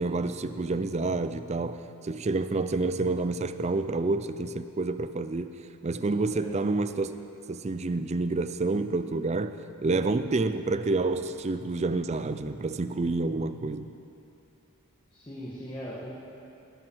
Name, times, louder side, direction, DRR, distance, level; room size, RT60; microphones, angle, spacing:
voice 1, 0.0-5.5 5.8-7.1 7.5-13.9, right 3 dB, 30° right, 11 dB, 0.4 m, -28 dB
voice 2, 15.1-16.1, equal, 20° left, -6 dB, 1.6 m, -39 dB
19.5 x 12.0 x 4.6 m, 2.8 s
head